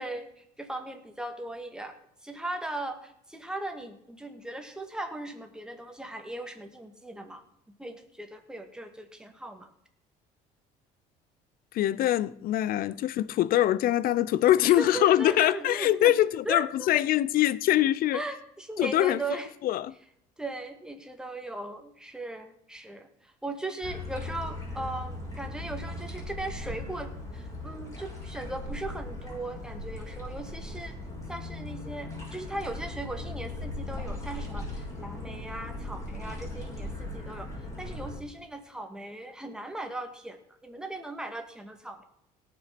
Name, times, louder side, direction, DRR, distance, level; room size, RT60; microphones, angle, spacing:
voice 1, 0.0-1.9 2.2-7.4 7.8-9.7 12.9-13.0 14.6-16.1 16.5-16.9 18.1-19.5 20.4-31.0 31.3-37.5 37.8-42.0, right 2 dB, 5° right, 2.1 m, -38 dB
voice 2, 11.7-18.2 18.8-19.2 19.6-19.9, left 13 dB, 60° left, 0.6 m, -23 dB
sound 1, 23.8-38.2, left 2 dB, 20° left, 6.4 m, -38 dB
17.5 x 6.2 x 6.0 m
supercardioid pair, 95°, 17 cm